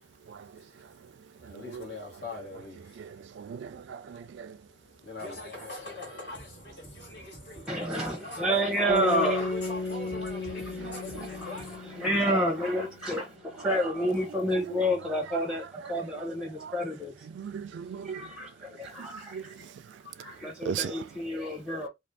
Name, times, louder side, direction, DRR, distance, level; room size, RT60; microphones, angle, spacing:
voice 1, 1.4-3.1 4.1-4.3 5.0-11.8, left 2 dB, 65° left, 1.6 m, -42 dB
voice 2, 3.4-4.2 17.4-18.2 19.3-19.4 20.7-20.9, right 8 dB, 75° right, 0.3 m, -35 dB
voice 3, 7.7-9.5 10.0-17.3 18.0-19.6 20.2-21.9, equal, 5° right, 0.7 m, -30 dB
sound 1, 8.9-13.1, left 3 dB, 50° left, 1.1 m, -34 dB
2.5 x 2.5 x 3.3 m
head